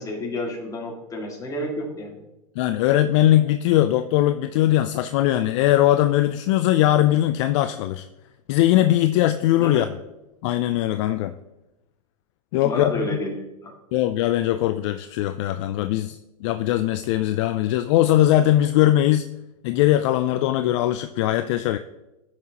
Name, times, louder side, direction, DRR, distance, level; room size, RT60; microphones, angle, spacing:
voice 1, 0.0-2.2 9.6-9.9 12.6-13.7, left 1 dB, 20° left, 0 dB, 2.1 m, -30 dB
voice 2, 2.6-8.1 8.5-9.9 10.4-11.4 12.5-13.2 13.9-19.3 19.6-21.8, left 13 dB, 50° left, 10 dB, 0.4 m, -20 dB
14.0 x 5.9 x 2.9 m, 0.99 s
hypercardioid pair, 120°, 19 cm